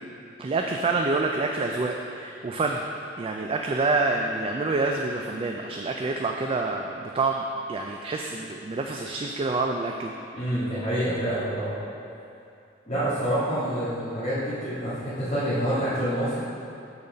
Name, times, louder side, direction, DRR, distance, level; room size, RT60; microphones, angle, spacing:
voice 1, 0.4-2.8 3.2-7.4 7.7-10.1, right 3 dB, 30° right, 2 dB, 0.3 m, -27 dB
voice 2, 10.3-11.8 12.9-16.4, equal, 35° left, -14 dB, 1.9 m, -27 dB
7.0 x 4.1 x 6.5 m, 2.5 s
head